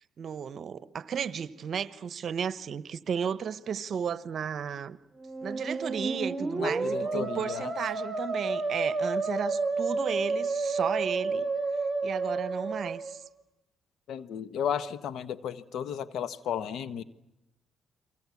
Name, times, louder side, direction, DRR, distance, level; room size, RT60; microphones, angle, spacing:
voice 1, 0.2-5.0 5.4-11.5 12.0-13.2, right 7 dB, 60° right, 1.0 m, -34 dB
Musical instrument, 5.2-13.2, right 3 dB, 15° right, 4.5 m, -31 dB
voice 2, 6.6-7.7 14.1-17.0, left 8 dB, 75° left, 1.2 m, -34 dB
30.0 x 23.5 x 8.4 m
cardioid pair, 80°, 0 cm